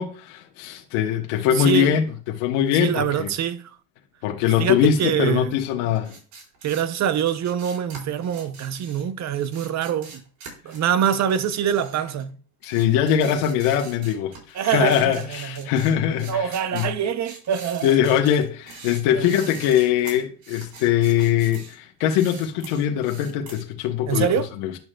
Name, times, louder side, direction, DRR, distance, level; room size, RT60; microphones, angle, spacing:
voice 1, 0.0-2.0 2.4-3.3 4.2-6.2 12.6-16.9 17.8-24.3 24.6-24.8, left 10 dB, 80° left, 1.1 m, -22 dB
voice 2, 1.5-2.0 2.7-3.8 4.4-5.6 6.6-10.2 10.6-12.4 14.5-15.7 16.3-18.0 19.1-19.3 24.1-24.5, right 9 dB, 35° right, 0.6 m, -25 dB
sound 1, 5.9-12.3 12.6-21.8 22.0-23.6, right 4 dB, 65° right, 4.2 m, -43 dB
10.5 x 6.1 x 2.2 m
supercardioid pair, 105°, 47 cm